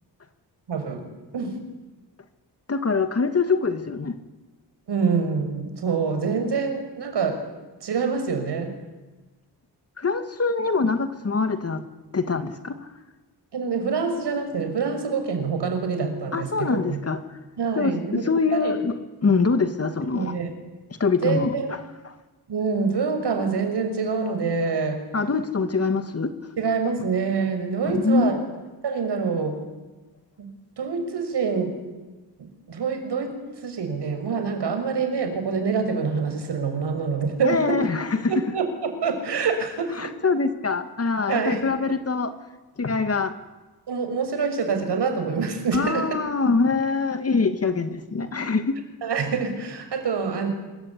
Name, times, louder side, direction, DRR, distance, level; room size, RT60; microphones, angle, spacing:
voice 1, 0.7-1.1 1.3-1.6 4.9-7.5 7.8-8.8 13.5-17.0 17.6-18.2 18.5-18.7 20.1-20.5 21.2-21.7 22.5-25.1 26.6-28.4 28.8-29.6 30.4-31.8 32.4-37.9 38.3-40.1 41.3-41.7 43.9-46.2 49.0-50.5, right 5 dB, 75° right, 6 dB, 6.0 m, -26 dB
voice 2, 2.7-4.2 10.0-11.8 12.1-12.8 16.3-17.2 17.8-18.9 19.2-20.3 21.0-21.5 22.1-22.2 25.1-26.3 27.9-28.5 37.4-38.3 40.0-42.3 42.8-43.4 45.7-48.8, left 4 dB, 35° left, 9 dB, 2.2 m, -24 dB
26.5 x 23.0 x 9.7 m, 1.2 s
wide cardioid pair, 140°, 41 cm